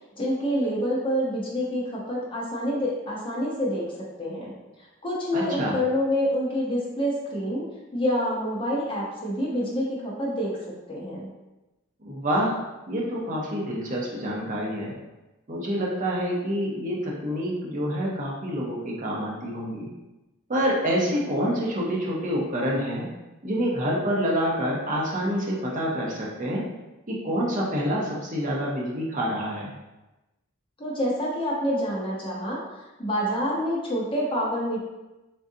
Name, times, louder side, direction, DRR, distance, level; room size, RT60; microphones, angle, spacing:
voice 1, 0.2-3.9 4.2-4.5 5.0-7.7 7.9-10.5 10.9-11.3 30.8-32.6 33.0-34.8, equal, 25° left, -4 dB, 0.7 m, -27 dB
voice 2, 5.3-5.8 12.0-12.5 12.9-14.9 15.5-19.9 20.5-23.1 23.4-26.6 27.1-29.7, equal, 35° right, -4 dB, 0.7 m, -27 dB
3.7 x 2.5 x 2.7 m, 1.0 s
head